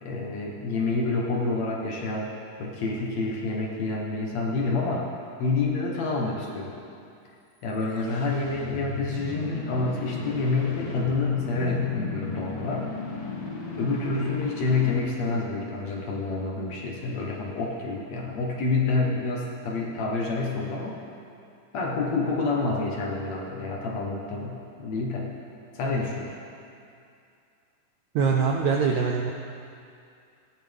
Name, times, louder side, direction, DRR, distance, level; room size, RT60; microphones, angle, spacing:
voice 1, 0.0-2.3 2.6-5.1 5.4-6.7 7.6-12.9 13.8-21.0 21.7-25.3 25.7-26.3, left 3 dB, 60° left, -2 dB, 2.2 m, -28 dB
sound 1, 7.8-15.9, left 4 dB, 85° left, 3.7 m, -35 dB
voice 2, 28.2-29.3, right 5 dB, 80° right, 1 dB, 1.6 m, -23 dB
18.0 x 10.5 x 3.5 m, 2.5 s
omnidirectional pair, 4.0 m